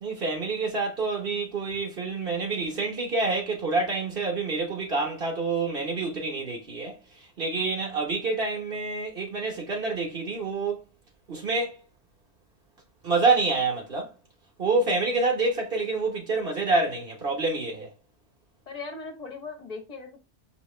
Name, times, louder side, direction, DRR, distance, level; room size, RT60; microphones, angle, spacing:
voice 1, 0.0-6.9 7.4-10.8 11.3-11.8 13.0-14.1 14.6-17.9, right 3 dB, 55° right, 1.4 m, -27 dB
voice 2, 18.7-20.2, left 4 dB, 35° left, 1.1 m, -38 dB
5.2 x 3.1 x 3.2 m
omnidirectional pair, 1.2 m